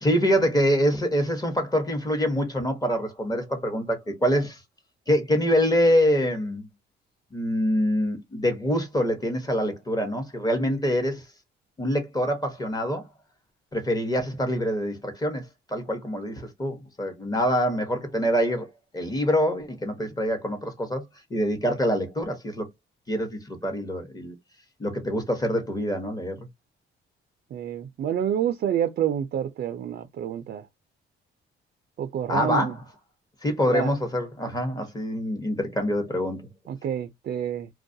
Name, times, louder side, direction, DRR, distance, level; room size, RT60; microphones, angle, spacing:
voice 1, 0.0-4.6 5.1-6.7 7.3-11.2 11.8-13.1 13.7-22.7 23.1-24.3 24.8-26.5 32.3-32.8 33.4-36.5, equal, 20° left, 0.9 m, -25 dB
voice 2, 27.5-30.7 32.0-32.7 33.7-33.9 36.7-37.7, right 9 dB, 50° right, 0.4 m, -28 dB
2.3 x 2.1 x 2.6 m
cardioid pair, 90°, 20 cm